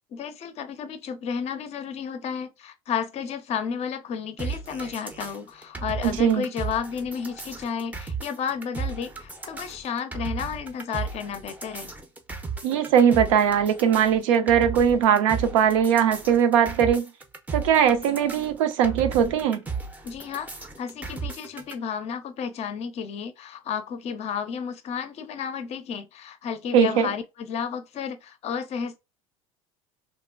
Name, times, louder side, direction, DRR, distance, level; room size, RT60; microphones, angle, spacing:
voice 1, 0.1-11.9 20.0-29.0, left 7 dB, 40° left, 0.5 m, -32 dB
sound 1, 4.4-21.7, right 5 dB, 10° right, 0.5 m, -35 dB
voice 2, 6.0-6.5 12.6-17.1 17.5-19.6 26.7-27.1, right 8 dB, 65° right, 0.5 m, -20 dB
3.0 x 2.1 x 2.3 m
hypercardioid pair, 70°, 18 cm